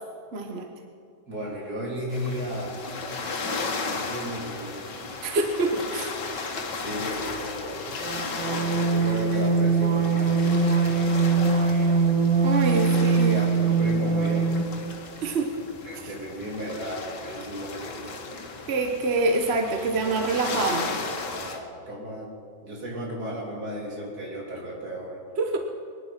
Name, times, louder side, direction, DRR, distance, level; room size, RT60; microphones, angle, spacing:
voice 1, 0.3-0.7 5.2-6.1 12.4-13.4 15.2-15.7 18.7-20.9 25.4-25.6, right 3 dB, 40° right, 4 dB, 1.1 m, -26 dB
voice 2, 1.3-2.7 3.8-4.8 5.7-5.8 6.1-6.2 6.5-7.8 8.3-12.0 12.8-14.8 15.9-18.2 21.3-22.3 22.6-25.2, equal, 55° right, -3 dB, 3.8 m, -35 dB
sound 1, 2.1-21.6, left 4 dB, 70° left, 2.1 m, -35 dB
sound 2, 8.0-14.8, right 4 dB, 85° right, 1.9 m, -22 dB
23.5 x 10.5 x 5.7 m, 2.4 s
omnidirectional pair, 1.9 m